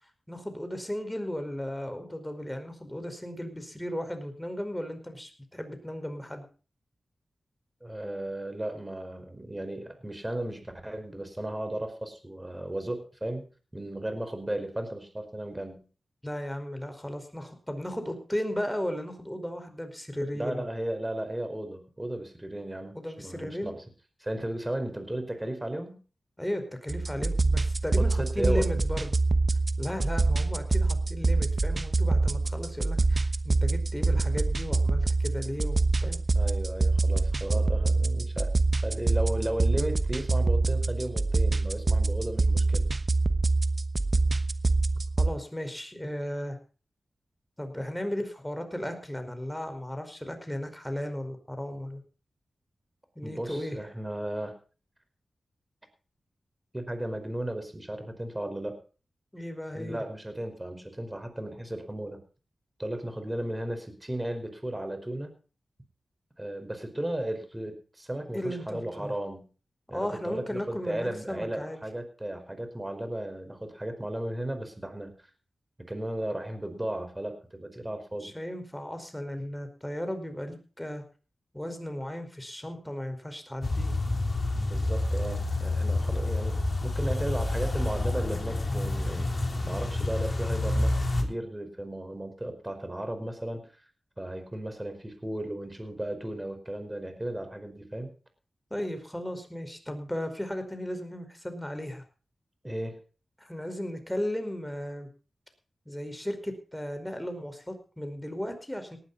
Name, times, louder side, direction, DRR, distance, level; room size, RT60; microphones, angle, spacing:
voice 1, 0.3-6.4 16.2-20.6 22.9-23.7 26.4-29.2 29.8-36.2 45.2-46.6 47.6-52.0 53.1-53.8 59.3-60.0 68.3-69.1 69.9-71.8 78.2-81.0 81.5-83.9 98.7-102.0 103.4-105.1 105.8-109.0, equal, 10° left, 7 dB, 4.9 m, -35 dB
voice 2, 7.8-13.5 13.7-15.8 20.3-23.8 24.2-26.0 28.0-28.7 36.3-38.5 38.8-42.8 53.2-54.5 56.7-58.8 59.7-62.2 62.8-65.3 66.4-69.4 69.9-75.1 75.8-78.3 84.5-93.6 94.2-98.1 102.6-103.0, right 1 dB, 15° right, 8 dB, 4.9 m, -35 dB
sound 1, 26.9-45.3, right 3 dB, 45° right, 1.1 m, -25 dB
sound 2, 83.6-91.2, left 2 dB, 45° left, 3.7 m, -28 dB
18.5 x 11.5 x 4.1 m, 0.37 s
cardioid pair, 55°, 0 cm